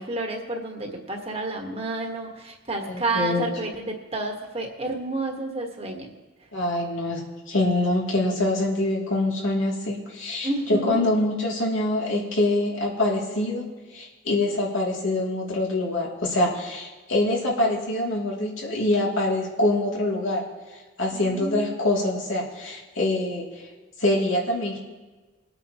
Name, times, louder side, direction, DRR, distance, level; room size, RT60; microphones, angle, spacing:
voice 1, 0.0-6.1 10.4-11.1 21.1-21.8, right 2 dB, 30° right, 2 dB, 1.5 m, -30 dB
voice 2, 2.9-3.5 6.5-13.7 13.9-20.4 21.0-23.5 24.0-24.8, left 2 dB, 85° left, -3 dB, 2.7 m, -25 dB
22.0 x 8.8 x 3.0 m, 1.3 s
head